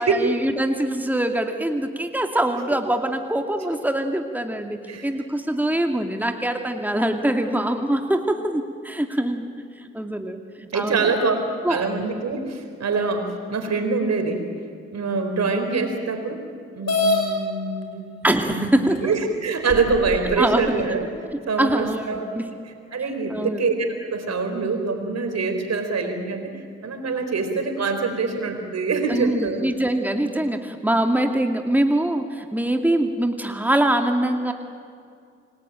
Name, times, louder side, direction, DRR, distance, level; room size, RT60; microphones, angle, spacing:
voice 1, 0.0-9.5 9.8-10.4 10.7-11.1 11.6-11.9 18.2-19.1 20.4-21.0 21.6-22.5 23.3-23.6 29.1-34.5, right 1 dB, 5° right, 4 dB, 2.5 m, -23 dB
voice 2, 10.7-11.4 11.7-14.5 14.9-16.4 16.7-18.1 18.5-21.1 21.5-22.3 22.7-26.5 26.8-29.6, right 4 dB, 60° right, 6 dB, 4.3 m, -25 dB
sound 1, 16.9-17.2 18.2-18.3 19.0-19.1 19.7-20.4, left 3 dB, 60° left, 5.6 m, -23 dB
28.5 x 19.0 x 9.0 m, 2.3 s
hypercardioid pair, 40°, 29 cm